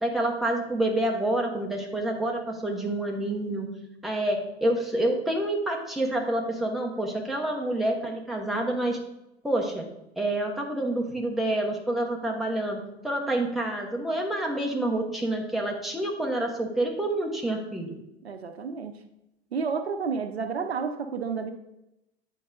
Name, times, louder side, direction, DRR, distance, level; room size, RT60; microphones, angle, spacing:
voice 1, 0.0-3.7 4.0-9.0 9.4-9.8 10.2-17.9, right 1 dB, ahead, -1 dB, 1.0 m, -28 dB
voice 2, 18.2-19.0 19.5-21.5, right 5 dB, 75° right, 7 dB, 0.7 m, -30 dB
9.0 x 4.6 x 2.5 m, 0.88 s
figure-of-eight pair, 80°, 32 cm